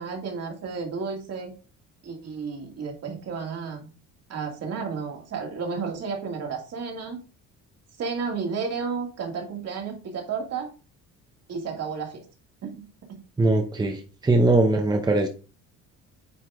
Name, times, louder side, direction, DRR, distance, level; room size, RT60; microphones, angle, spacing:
voice 1, 0.0-1.5 2.0-3.9 4.3-7.2 8.0-10.7 11.5-12.2 12.6-13.2, right 5 dB, 50° right, 2 dB, 2.4 m, -32 dB
voice 2, 13.4-15.3, right 2 dB, 15° right, 4 dB, 0.9 m, -21 dB
9.3 x 4.4 x 3.6 m, 0.34 s
cardioid pair, 130°, 32 cm